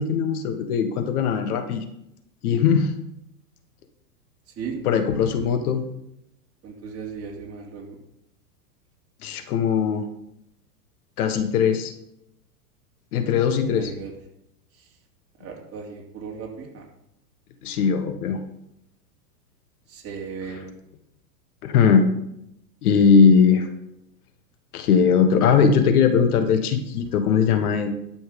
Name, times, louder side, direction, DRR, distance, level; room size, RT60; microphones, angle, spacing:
voice 1, 0.0-1.8 2.4-2.9 4.8-5.8 9.2-10.0 11.2-11.9 13.1-13.9 17.6-18.4 20.5-20.6 21.6-22.1 22.8-23.7 24.7-27.9, left 6 dB, 65° left, 8 dB, 1.5 m, -20 dB
voice 2, 6.6-8.0 13.6-14.1 15.4-16.8 19.9-20.7, right 5 dB, 30° right, -1 dB, 3.1 m, -36 dB
12.0 x 6.2 x 5.2 m, 0.81 s
hypercardioid pair, 120°, 49 cm